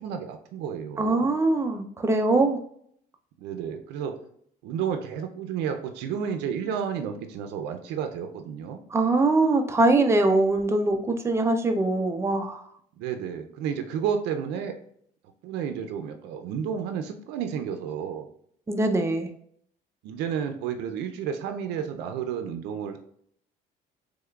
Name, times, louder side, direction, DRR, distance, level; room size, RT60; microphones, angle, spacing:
voice 1, 0.0-1.3 3.4-4.2 4.6-8.8 13.0-14.8 15.4-18.3 20.0-23.0, right 7 dB, 90° right, 6 dB, 0.4 m, -31 dB
voice 2, 1.0-2.6 8.9-12.6 18.7-19.3, right 2 dB, 15° right, 5 dB, 0.4 m, -22 dB
3.5 x 3.2 x 2.3 m, 0.65 s
cardioid pair, 110°, 17 cm